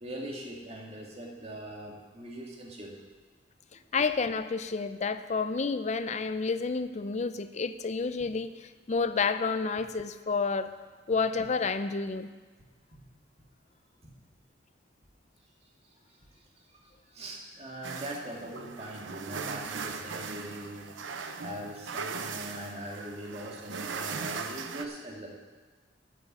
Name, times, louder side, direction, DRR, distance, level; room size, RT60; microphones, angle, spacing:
voice 1, 0.0-2.9 3.7-3.8 12.9-13.0 14.0-14.1 16.3-16.4 16.8-25.4, right 1 dB, 35° right, -1 dB, 2.0 m, -41 dB
voice 2, 3.9-10.7 11.1-12.3, left 4 dB, 40° left, 11 dB, 0.5 m, -30 dB
sound 1, 17.8-24.8, right 5 dB, 90° right, 0.7 m, -39 dB
9.2 x 8.7 x 7.4 m, 1.4 s
head